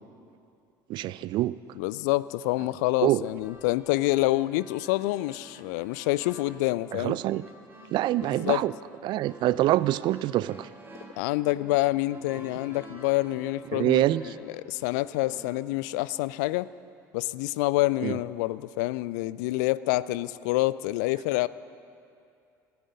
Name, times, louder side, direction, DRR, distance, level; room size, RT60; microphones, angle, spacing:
voice 1, 0.9-1.6 3.0-3.2 6.9-7.4 7.9-8.7 9.0-10.7 13.7-14.3 18.0-18.2, right 15 dB, 45° right, 18 dB, 0.4 m, -25 dB
voice 2, 1.8-7.2 8.4-8.6 11.2-14.0 14.4-16.7 17.1-21.5, left 18 dB, 60° left, 18 dB, 0.3 m, -27 dB
sound 1, 3.3-15.6, right 1 dB, 20° right, 3.1 m, -50 dB
13.5 x 9.2 x 8.6 m, 2.5 s
figure-of-eight pair, 60°, 11 cm